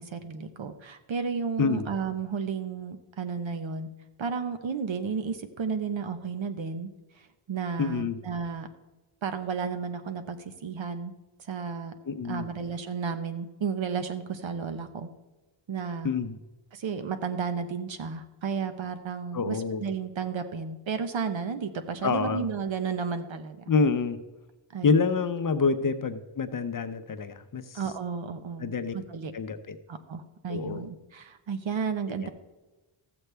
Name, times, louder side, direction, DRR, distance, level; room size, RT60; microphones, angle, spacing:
voice 1, 0.0-3.9 4.2-6.9 7.5-8.7 9.2-11.1 11.5-11.9 12.2-15.1 15.7-16.1 16.7-23.6 24.7-25.1 27.7-29.3 29.9-32.3, right 6 dB, 65° right, 9 dB, 1.0 m, -33 dB
voice 2, 7.8-8.2 12.1-12.5 16.0-16.4 19.3-19.8 22.0-22.4 23.7-24.2 24.8-27.8 28.6-28.9 29.3-29.8 30.5-30.8 32.2-32.3, left 5 dB, 40° left, 9 dB, 0.7 m, -27 dB
14.0 x 7.9 x 3.4 m, 1.1 s
wide cardioid pair, 100°, 49 cm